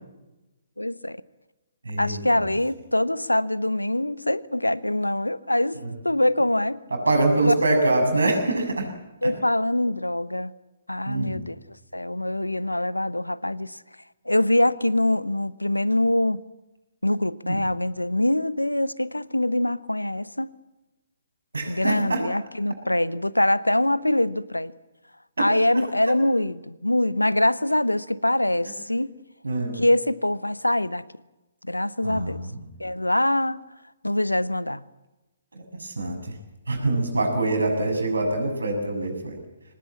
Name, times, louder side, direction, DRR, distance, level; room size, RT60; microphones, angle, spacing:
voice 1, 0.8-1.2 2.0-6.8 7.4-7.6 9.2-10.5 10.9-11.6 11.9-13.8 14.3-16.4 17.0-20.5 21.7-24.7 25.4-29.2 29.7-31.0 31.6-32.4 32.8-33.6 34.0-34.8, left 1 dB, 90° left, 19 dB, 0.8 m, -24 dB
voice 2, 1.8-2.5 5.8-5.9 6.9-8.9 9.2-9.3 11.1-11.4 17.4-17.6 21.5-22.2 25.4-25.5 29.4-29.8 32.0-32.6 35.5-36.4 36.7-39.4, right 2 dB, 75° right, 3 dB, 6.8 m, -25 dB
24.0 x 19.0 x 8.6 m, 1.1 s
figure-of-eight pair, 130°, 0 cm